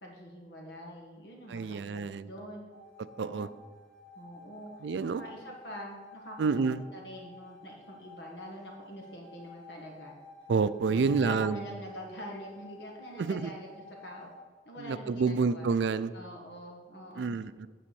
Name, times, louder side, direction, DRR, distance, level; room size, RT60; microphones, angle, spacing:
voice 1, 0.0-2.7 3.2-3.5 4.1-6.4 6.9-10.1 10.9-14.3 14.6-15.7 16.1-17.2, equal, 75° left, 0 dB, 1.6 m, -45 dB
voice 2, 1.5-2.3 3.2-3.5 4.8-5.2 6.4-6.8 10.5-11.6 13.2-13.5 14.8-16.1 17.2-17.7, right 5 dB, 80° right, 14 dB, 0.4 m, -28 dB
sound 1, 2.7-14.4, left 1 dB, 5° left, 1.9 m, -52 dB
9.0 x 4.2 x 7.0 m, 1.5 s
head